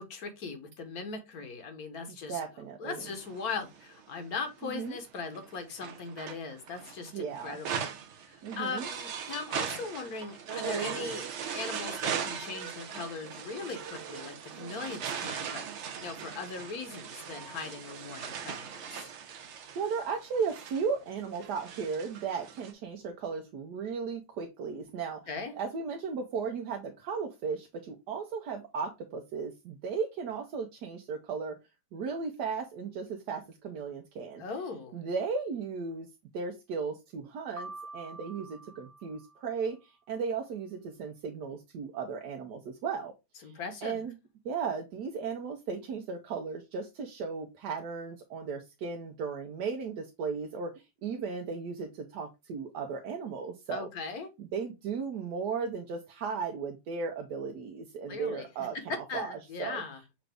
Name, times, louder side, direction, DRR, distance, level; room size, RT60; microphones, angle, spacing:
voice 1, 0.0-2.4 2.8-7.9 8.2-19.1 25.3-25.5 34.4-35.0 43.4-44.0 53.7-54.3 58.1-60.0, left 4 dB, 65° left, 1.4 m, -39 dB
voice 2, 2.3-3.0 4.6-5.0 7.1-7.6 8.4-8.9 19.4-25.3 25.6-31.6 31.9-34.4 34.9-36.1 36.3-43.1 43.4-43.6 43.8-44.1 44.4-53.9 54.4-58.8 59.1-59.8, right 5 dB, 80° right, 1.3 m, -36 dB
sound 1, 3.0-4.2 4.8-22.7, right 7 dB, 60° right, 0.8 m, -39 dB
Piano, 37.6-39.7, right 2 dB, 45° right, 1.3 m, -46 dB
5.8 x 2.6 x 3.3 m
omnidirectional pair, 1.8 m